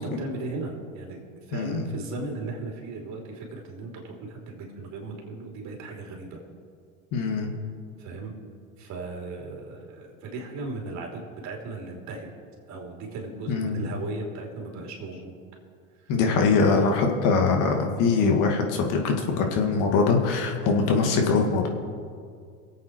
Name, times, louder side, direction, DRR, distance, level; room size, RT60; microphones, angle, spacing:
voice 1, 0.0-6.4 8.0-8.3 8.8-12.3 12.7-15.4, right 3 dB, 45° right, 0 dB, 3.3 m, -37 dB
voice 2, 1.5-1.9 7.1-7.5 13.5-13.8 16.1-21.7, left 4 dB, 50° left, 2 dB, 2.3 m, -22 dB
23.0 x 8.3 x 4.7 m, 2.2 s
hypercardioid pair, 100°, 39 cm